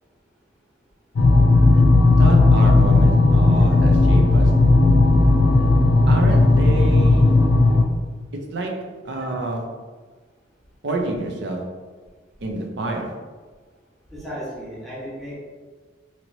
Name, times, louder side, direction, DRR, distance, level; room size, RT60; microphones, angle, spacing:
sound 1, 1.2-7.8, left 2 dB, 85° left, 0.5 m, -15 dB
voice 1, 2.2-4.6 6.1-7.5 8.5-9.7 10.8-11.7 12.4-13.2, right 2 dB, 70° right, 1 dB, 0.5 m, -28 dB
voice 2, 14.1-15.3, equal, ahead, -10 dB, 1.1 m, -34 dB
3.0 x 2.9 x 2.6 m, 1.4 s
head